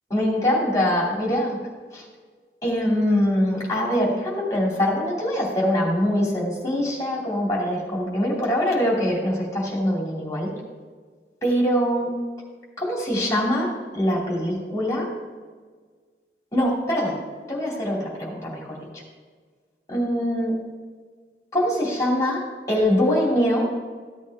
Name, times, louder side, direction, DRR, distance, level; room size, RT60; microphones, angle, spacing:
voice 1, 0.1-1.6 1.9-2.0 2.6-10.5 11.4-12.1 12.8-13.7 14.0-15.1 16.5-17.2 17.5-18.6 19.9-20.6 21.5-23.7, equal, 20° left, -3 dB, 2.8 m, -23 dB
14.5 x 8.5 x 3.6 m, 1.5 s
head